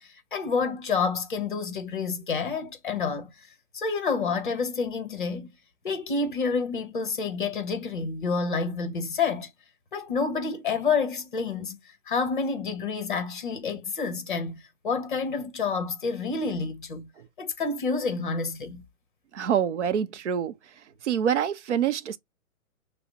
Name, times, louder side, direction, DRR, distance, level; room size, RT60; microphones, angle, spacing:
voice 1, 0.0-3.3 3.7-5.5 5.8-9.5 9.9-11.8 12.1-14.5 14.8-17.1 17.4-18.8, left 4 dB, 35° left, 0.8 m, -28 dB
voice 2, 19.3-20.6 21.0-22.2, right 8 dB, 55° right, 0.5 m, -26 dB
5.6 x 2.0 x 2.8 m
hypercardioid pair, 170°, 43 cm